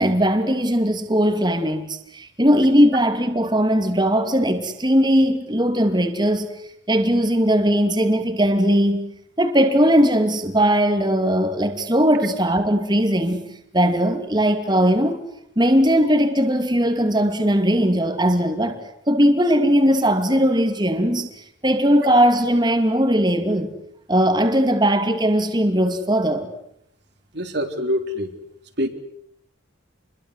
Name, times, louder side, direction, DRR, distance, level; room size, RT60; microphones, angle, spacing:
voice 1, 0.0-6.5 6.9-9.1 9.4-13.4 13.7-15.2 15.6-18.8 19.1-21.3 21.6-23.7 24.1-26.5, equal, 20° right, 2.7 m, -19 dB
voice 2, 27.3-28.3 28.8-28.9, equal, 55° right, 3.6 m, -24 dB
29.0 x 22.5 x 8.2 m
head